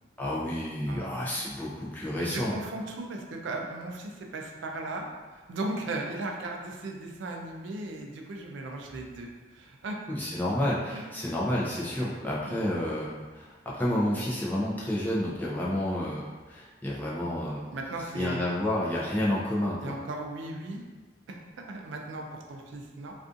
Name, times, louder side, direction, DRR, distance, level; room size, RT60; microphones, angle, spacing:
voice 1, 0.2-2.5 10.1-16.2 16.5-17.6 18.1-19.9, left 1 dB, 10° left, -6 dB, 0.4 m, -30 dB
voice 2, 0.9-1.2 2.2-5.1 5.3-10.0 10.9-11.0 12.4-12.6 17.7-18.5 19.8-20.8 21.3-23.1, right 2 dB, 80° right, 1 dB, 0.4 m, -37 dB
2.4 x 2.4 x 2.5 m, 1.3 s
head